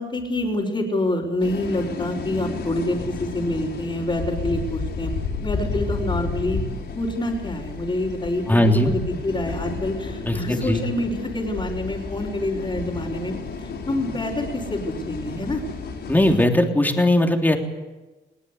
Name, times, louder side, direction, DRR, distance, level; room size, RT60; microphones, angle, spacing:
voice 1, 0.0-5.1 5.4-15.6, left 1 dB, 25° left, -7 dB, 4.4 m, -27 dB
sound 1, 1.4-16.5, left 4 dB, 60° left, 5.7 m, -32 dB
voice 2, 8.5-8.9 10.2-10.4 10.6-10.8 16.1-17.6, left 1 dB, 10° left, 3 dB, 3.2 m, -18 dB
21.0 x 18.5 x 8.3 m, 1.2 s
cardioid pair, 90°, 20 cm